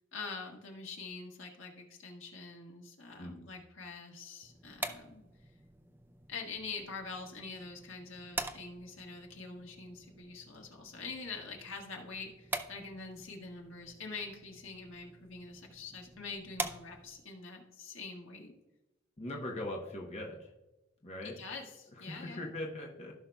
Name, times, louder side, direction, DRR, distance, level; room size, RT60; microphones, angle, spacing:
voice 1, 0.1-5.2 6.3-18.5 21.2-22.5, left 4 dB, 70° left, 1 dB, 1.6 m, -45 dB
sound 1, 4.4-17.3, right 2 dB, 10° right, 0.4 m, -45 dB
voice 2, 19.2-20.5 21.0-21.4 22.1-23.1, left 1 dB, 30° left, -1 dB, 1.0 m, -40 dB
15.5 x 5.7 x 2.3 m, 1.0 s
head